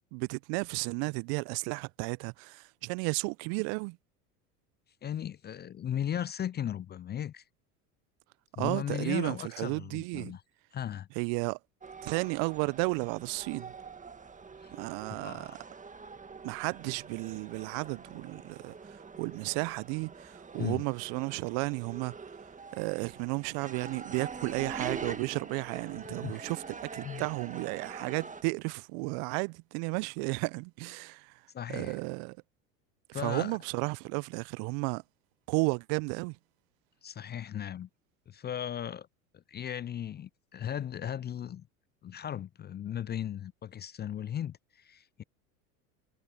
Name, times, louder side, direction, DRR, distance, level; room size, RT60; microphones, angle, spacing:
voice 1, 0.1-4.0 8.6-10.4 11.2-11.6 12.0-13.7 14.7-15.5 16.4-22.1 22.7-31.3 31.7-32.4 33.1-35.0 35.5-36.4, right 33 dB, 55° right, 0.8 m, -33 dB
voice 2, 5.0-7.4 8.6-10.4 10.7-11.1 14.6-14.7 15.1-15.6 20.6-20.8 26.2-26.4 27.0-27.2 31.5-32.0 33.1-33.6 37.0-37.9 38.3-39.1 39.3-41.6 42.0-45.2, left 10 dB, 25° left, 0.5 m, -37 dB
sound 1, 11.8-28.4, right 5 dB, 15° right, 1.7 m, -45 dB
hypercardioid pair, 75°, 45 cm